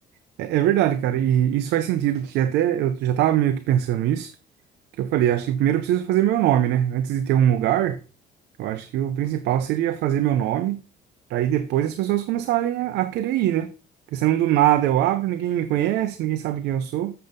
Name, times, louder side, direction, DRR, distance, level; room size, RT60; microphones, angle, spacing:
voice 1, 0.4-4.3 5.0-8.0 8.6-10.8 11.3-13.7 14.1-17.1, right 12 dB, 80° right, 0.8 m, -22 dB
7.7 x 6.8 x 5.3 m
cardioid pair, 110°, 17 cm